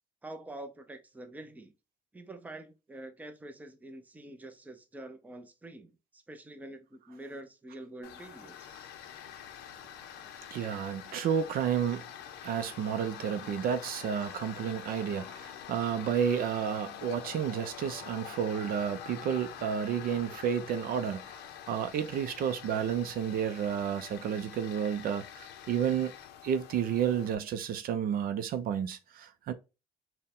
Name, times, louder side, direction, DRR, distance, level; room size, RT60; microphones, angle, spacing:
voice 1, 0.2-1.7 2.1-8.7, right 1 dB, 10° right, 0.5 m, -46 dB
Tools, 8.0-27.3, left 10 dB, 85° left, 0.6 m, -46 dB
voice 2, 10.5-12.0 12.4-21.4 21.6-26.1 26.4-29.5, right 8 dB, 60° right, 0.5 m, -31 dB
4.2 x 2.2 x 3.6 m
cardioid pair, 110°, 17 cm